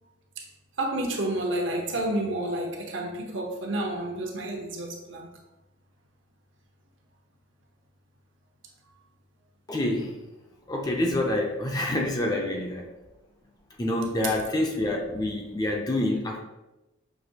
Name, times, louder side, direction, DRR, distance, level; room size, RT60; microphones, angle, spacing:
voice 1, 0.8-5.3, right 1 dB, 65° right, 0.8 m, -30 dB
voice 2, 9.7-10.2 10.7-12.9 13.8-16.4, left 1 dB, 20° left, 0.4 m, -27 dB
5.9 x 3.0 x 2.8 m
head